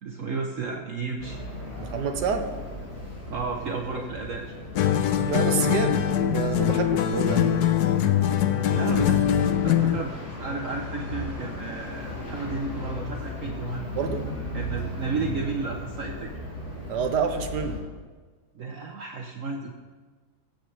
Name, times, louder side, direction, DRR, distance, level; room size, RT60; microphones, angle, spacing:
voice 1, 0.0-1.4 3.3-4.5 8.7-9.3 9.6-13.8 14.5-16.4 18.5-19.7, right 4 dB, 55° right, 2 dB, 1.2 m, -33 dB
sound 1, 1.2-17.8, left 1 dB, 60° left, 3.2 m, -36 dB
voice 2, 1.8-2.5 5.2-7.7 13.9-14.3 16.9-17.8, right 5 dB, 90° right, 7 dB, 1.8 m, -28 dB
sound 2, 4.8-10.1, left 10 dB, 75° left, 1.2 m, -23 dB
15.5 x 15.0 x 3.3 m, 1.4 s
omnidirectional pair, 1.8 m